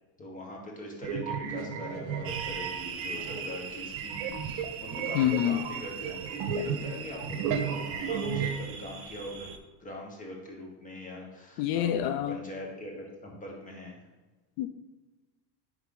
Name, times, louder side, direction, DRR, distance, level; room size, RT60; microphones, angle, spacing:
voice 1, 0.2-9.5 9.8-14.0, left 1 dB, 15° left, 0 dB, 1.5 m, -42 dB
sound 1, 1.0-3.6 3.9-8.6, right 6 dB, 65° right, 1.0 m, -34 dB
sound 2, 2.2-9.6, right 8 dB, 30° right, 0.6 m, -41 dB
voice 2, 5.1-5.6 11.6-12.4 14.6-14.7, left 11 dB, 80° left, 10 dB, 0.6 m, -26 dB
9.9 x 3.5 x 3.8 m, 1.2 s
cardioid pair, 145°, 44 cm